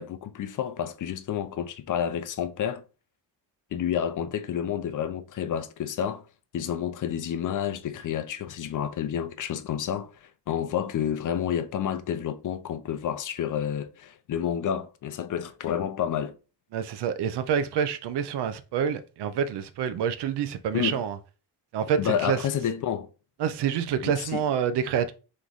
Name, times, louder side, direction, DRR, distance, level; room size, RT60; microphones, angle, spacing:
voice 1, 0.0-2.8 3.7-6.2 6.5-16.4 20.7-21.0 22.0-23.1 24.0-24.4, left 9 dB, 45° left, 0.5 m, -30 dB
voice 2, 16.7-21.2 21.7-22.4 23.4-25.1, right 8 dB, 70° right, 0.7 m, -27 dB
3.5 x 3.2 x 3.9 m
cardioid pair, 140°, 42 cm